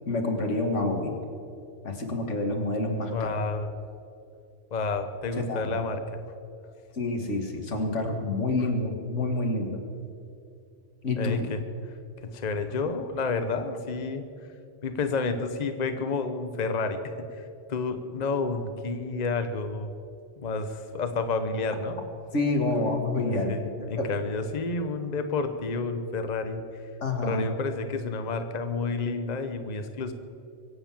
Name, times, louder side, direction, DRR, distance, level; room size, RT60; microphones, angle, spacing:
voice 1, 0.1-1.2 1.8-3.3 5.3-5.7 6.9-9.8 11.0-11.4 22.3-24.1 27.0-27.4, left 2 dB, 85° left, 3 dB, 2.2 m, -28 dB
voice 2, 3.1-3.7 4.7-6.2 11.2-11.6 12.2-14.3 14.8-17.4 17.7-19.9 20.4-22.0 23.5-23.6 23.9-26.6 27.2-30.1, left 4 dB, 40° left, 8 dB, 1.0 m, -30 dB
23.5 x 8.0 x 7.4 m, 2.5 s
omnidirectional pair, 1.2 m